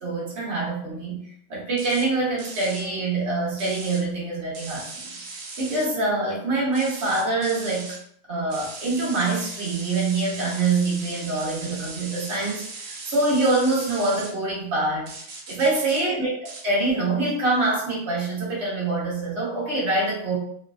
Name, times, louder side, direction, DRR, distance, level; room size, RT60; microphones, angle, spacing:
voice 1, 0.0-1.2 1.5-5.1 5.6-7.9 8.3-15.1 15.5-16.3 16.6-20.4, right 2 dB, 40° right, -5 dB, 1.2 m, -25 dB
sound 1, 1.8-2.1 2.4-2.9 3.6-4.0 4.5-5.9 6.7-8.0 8.5-14.3 15.1-16.0 16.5-16.6, right 3 dB, 65° right, 1.2 m, -38 dB
3.2 x 3.0 x 2.5 m, 0.64 s
omnidirectional pair, 2.4 m